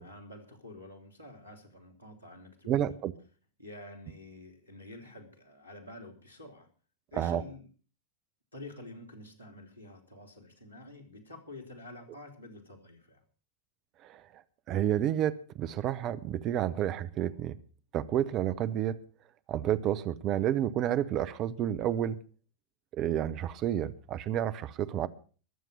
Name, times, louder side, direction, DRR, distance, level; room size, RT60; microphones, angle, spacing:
voice 1, 0.0-2.9 3.6-6.7 7.1-7.7 8.5-13.2, left 1 dB, 90° right, 3.3 m, -48 dB
voice 2, 2.7-3.1 7.2-7.4 14.0-14.2 14.7-17.5 17.9-19.0 19.5-22.2 22.9-25.1, right 11 dB, 35° right, 0.9 m, -30 dB
22.0 x 7.6 x 5.6 m
figure-of-eight pair, 90°, 0 cm